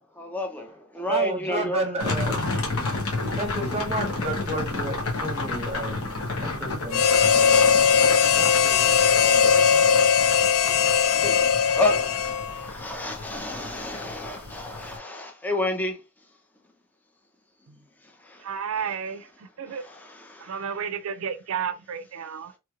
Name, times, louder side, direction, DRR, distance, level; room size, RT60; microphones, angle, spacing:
voice 1, 0.2-0.7 0.9-1.8 11.2-11.4 11.8-12.2 12.5-15.9 19.9-20.0, left 1 dB, 10° left, 0.5 m, -29 dB
voice 2, 1.1-2.4 3.3-10.1, right 2 dB, 30° right, 0.9 m, -32 dB
sound 1, 2.0-15.0, left 2 dB, 85° left, 1.0 m, -32 dB
Harmonica, 6.9-12.7, left 6 dB, 65° left, 0.3 m, -19 dB
voice 3, 18.4-19.8 20.4-22.6, right 7 dB, 70° right, 0.4 m, -32 dB
3.0 x 3.0 x 2.4 m
head